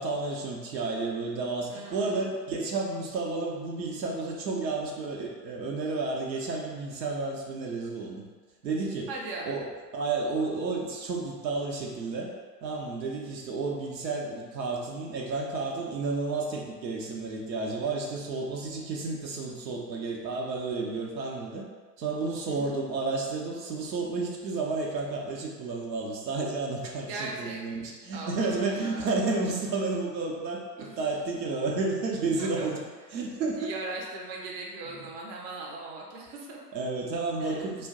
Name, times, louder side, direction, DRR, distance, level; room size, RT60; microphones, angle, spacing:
voice 1, 0.0-8.2 8.6-9.2 9.5-9.6 9.9-12.3 12.6-21.6 22.0-32.8 33.1-33.8 35.0-35.1 36.7-37.9, right 3 dB, 80° right, -1 dB, 0.7 m, -31 dB
voice 2, 1.7-2.3 9.1-9.5 22.4-22.8 27.1-27.8 28.1-29.1 30.8-31.0 32.4-32.7 33.6-36.6 37.4-37.7, right 3 dB, 30° right, -2 dB, 0.6 m, -39 dB
2.5 x 2.2 x 3.6 m, 1.4 s
hypercardioid pair, 90°, 50 cm